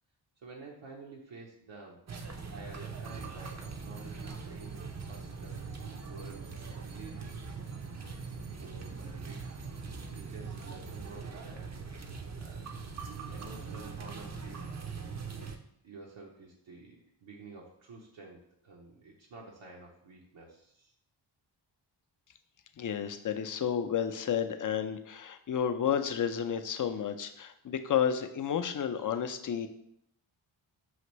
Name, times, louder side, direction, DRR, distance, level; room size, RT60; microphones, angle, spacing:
voice 1, 0.4-2.0 2.5-4.8 5.1-5.5 6.0-7.4 8.6-9.4 9.8-11.7 12.0-12.8 13.3-14.7 15.3-15.5 15.8-20.9, right 3 dB, 65° right, -2 dB, 0.8 m, -50 dB
sound 1, 2.1-15.6, right 5 dB, 35° right, 0.6 m, -41 dB
voice 2, 22.8-29.7, left 8 dB, 40° left, 8 dB, 0.5 m, -31 dB
5.7 x 2.5 x 3.0 m, 0.71 s
cardioid pair, 50°, 50 cm